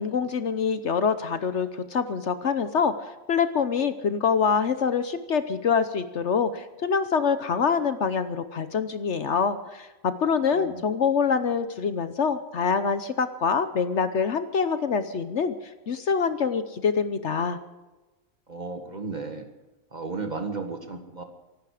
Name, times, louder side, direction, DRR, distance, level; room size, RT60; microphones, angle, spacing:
voice 1, 0.0-15.5 15.9-17.6, left 6 dB, 60° left, 11 dB, 1.1 m, -25 dB
voice 2, 10.5-10.8 18.5-19.5 19.9-21.2, right 3 dB, 30° right, 5 dB, 2.0 m, -34 dB
24.5 x 11.5 x 5.0 m, 1.1 s
omnidirectional pair, 1.4 m